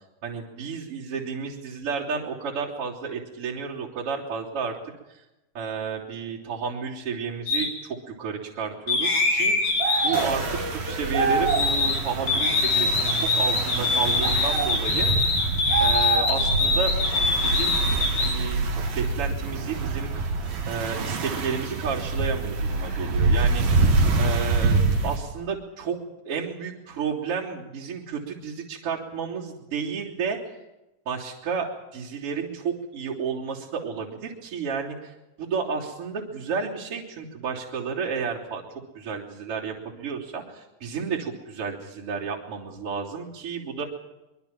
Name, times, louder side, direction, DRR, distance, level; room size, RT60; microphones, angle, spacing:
voice 1, 0.2-4.8 5.1-5.2 5.5-15.1 15.8-16.9 17.4-17.8 18.2-18.6 19.0-20.4 20.7-23.6 24.2-26.0 26.3-30.4 31.1-38.6 38.9-43.8, right 6 dB, 40° right, -5 dB, 4.1 m, -31 dB
sound 1, 7.5-7.7 8.9-12.0 12.3-18.3, left 3 dB, 80° left, 6.7 m, -24 dB
sound 2, 9.8-10.3 11.1-11.7 14.2-14.7 15.7-16.5, right 4 dB, 70° right, 3.5 m, -25 dB
sound 3, 10.1-25.2, right 3 dB, 85° right, 4.7 m, -26 dB
24.0 x 24.0 x 6.0 m, 0.98 s
omnidirectional pair, 3.9 m